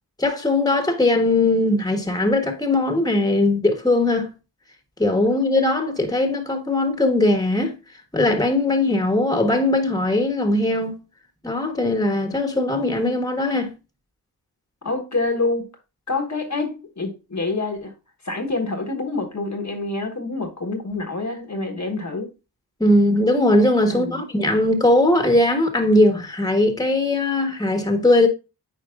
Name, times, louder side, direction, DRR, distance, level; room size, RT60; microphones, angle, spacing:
voice 1, 0.2-4.3 5.0-7.7 8.1-10.9 11.4-13.7 22.8-28.3, left 2 dB, 10° left, 1.4 m, -19 dB
voice 2, 14.8-15.7 16.1-17.9 18.2-22.3 23.9-24.2, left 3 dB, 45° left, 1.3 m, -27 dB
8.9 x 4.6 x 2.5 m
cardioid pair, 45°, 40 cm